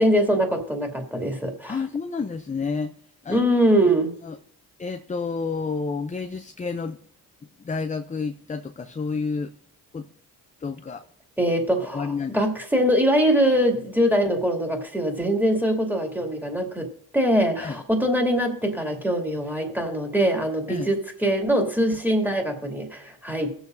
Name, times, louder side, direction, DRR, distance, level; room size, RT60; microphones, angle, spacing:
voice 1, 0.0-1.8 3.3-4.1 11.4-23.5, equal, 5° right, 2.6 m, -23 dB
voice 2, 1.7-2.9 3.2-3.4 4.2-4.4 4.8-7.0 7.6-9.5 9.9-10.1 10.6-11.0 11.8-12.4 17.6-17.8 20.7-20.9, left 4 dB, 20° left, 0.5 m, -30 dB
20.0 x 7.2 x 2.6 m
supercardioid pair, 60°, 43 cm